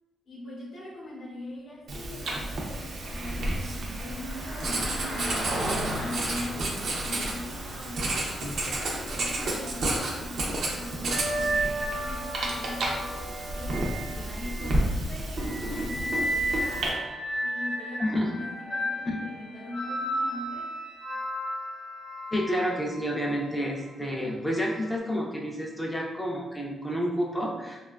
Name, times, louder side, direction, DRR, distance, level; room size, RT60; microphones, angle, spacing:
voice 1, 0.3-13.1 13.5-17.0 17.4-20.8, left 1 dB, 70° left, -6 dB, 0.7 m, -41 dB
Writing, 1.9-16.9, right 1 dB, 60° right, 0.4 m, -31 dB
Car passing by, 2.8-14.2, right 1 dB, 85° right, 0.8 m, -39 dB
sound 1, 10.5-14.9 15.4-23.5 24.5-24.7, right 1 dB, 30° left, 0.7 m, -33 dB
voice 2, 22.3-27.8, equal, 5° left, -1 dB, 0.4 m, -29 dB
2.8 x 2.2 x 2.2 m, 1.2 s
wide cardioid pair, 150°, 0 cm